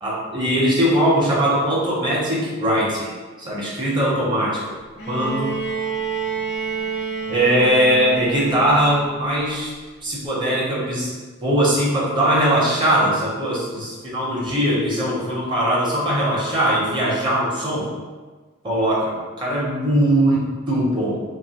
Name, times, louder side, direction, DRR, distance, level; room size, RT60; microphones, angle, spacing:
voice 1, 0.0-3.1 3.4-4.6 5.1-5.5 7.3-9.7 10.0-11.1 11.4-17.9 18.6-21.2, right 1 dB, 20° right, -5 dB, 0.6 m, -20 dB
Bowed string instrument, 5.0-9.0 10.3-10.4, right 4 dB, 50° left, 0.4 m, -28 dB
2.9 x 2.3 x 2.8 m, 1.4 s
head